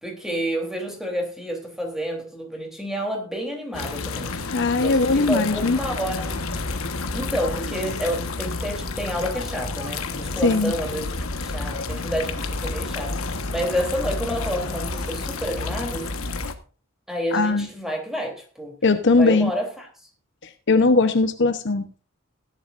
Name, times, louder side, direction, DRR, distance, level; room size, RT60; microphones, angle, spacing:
voice 1, 0.0-6.4 7.1-11.1 11.4-16.1 17.1-18.7 19.2-19.9, equal, ahead, 3.4 m, -29 dB
sound 1, 3.7-16.5, left 3 dB, 90° left, 1.4 m, -30 dB
voice 2, 4.5-5.8 10.4-10.7 17.3-17.7 18.8-19.5 20.7-22.0, left 3 dB, 60° left, 0.9 m, -19 dB
17.0 x 11.0 x 2.6 m
head